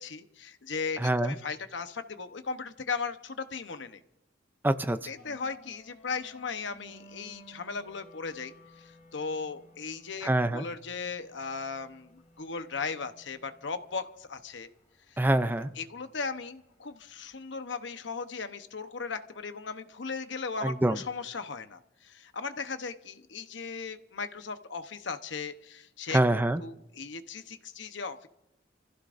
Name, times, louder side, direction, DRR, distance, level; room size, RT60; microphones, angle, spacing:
voice 1, 0.0-4.0 5.1-14.7 15.1-15.2 15.8-26.2 26.6-28.3, left 5 dB, 70° left, 9 dB, 0.9 m, -37 dB
voice 2, 1.0-1.4 4.6-5.0 10.2-10.6 15.2-15.7 20.6-21.0 26.1-26.6, right 1 dB, 10° right, 11 dB, 0.5 m, -25 dB
sound 1, 5.2-17.5, left 1 dB, 45° left, 3.5 m, -57 dB
29.5 x 15.5 x 2.6 m, 0.84 s
head